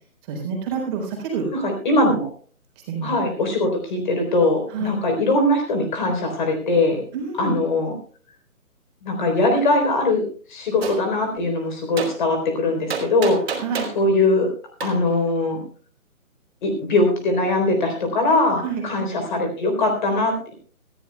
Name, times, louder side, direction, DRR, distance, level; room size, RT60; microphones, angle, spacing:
voice 1, 0.2-1.5 2.8-3.1 4.7-4.9 7.1-7.6 13.6-13.9 18.6-18.8, right 6 dB, 15° right, -1 dB, 4.1 m, -27 dB
voice 2, 1.6-2.3 3.0-7.0 7.4-7.9 9.0-10.2 10.5-13.6 14.0-14.5 14.8-15.6 16.6-20.5, left 2 dB, 35° left, 4 dB, 3.9 m, -21 dB
Gunshot gunfire, 10.8-11.0 12.0-12.1 12.9-14.0 14.8-14.9, right 6 dB, 45° right, 3.6 m, -27 dB
19.5 x 15.0 x 2.3 m, 0.41 s
hypercardioid pair, 165°, 43 cm